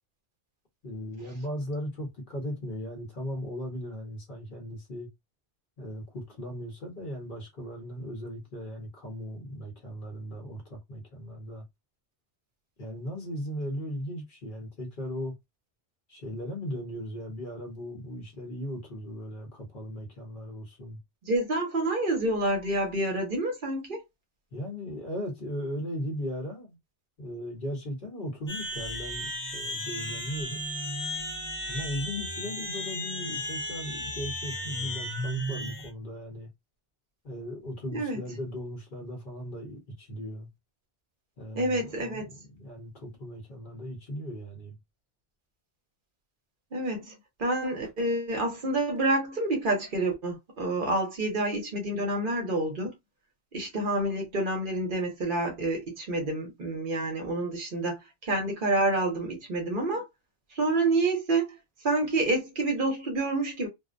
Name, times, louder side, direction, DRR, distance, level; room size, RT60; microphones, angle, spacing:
voice 1, 0.8-5.1 5.8-11.6 12.8-15.3 16.1-21.0 24.5-26.8 27.2-30.6 31.7-36.5 37.2-40.5 41.4-44.8, equal, 55° left, 1.1 m, -37 dB
voice 2, 21.3-24.0 37.9-38.2 41.6-42.3 46.7-47.1 47.4-52.9 53.5-60.1 60.5-61.5 61.8-63.7, right 2 dB, 55° right, 0.9 m, -28 dB
sound 1, 28.5-35.9, equal, 20° left, 0.7 m, -34 dB
2.5 x 2.0 x 2.5 m
omnidirectional pair, 1.1 m